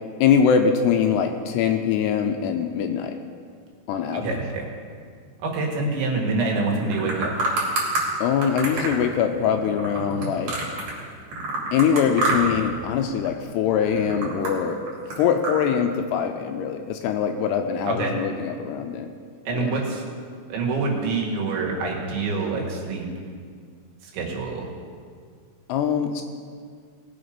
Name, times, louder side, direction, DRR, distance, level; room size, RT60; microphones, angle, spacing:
voice 1, 0.2-3.2 3.9-4.4 8.2-10.7 11.7-14.8 15.2-19.1 19.5-19.7 25.7-26.2, left 7 dB, 80° left, 6 dB, 2.5 m, -23 dB
voice 2, 4.1-4.7 5.4-7.4 17.9-18.2 19.5-20.0 20.5-23.1 24.0-24.7, right 3 dB, 80° right, -1 dB, 4.1 m, -26 dB
sound 1, 6.8-8.0 8.4-11.0 11.3-12.7 12.9-13.4 13.8-15.6, right 2 dB, 50° right, 3.9 m, -27 dB
19.0 x 7.0 x 5.2 m, 2.1 s
omnidirectional pair, 5.1 m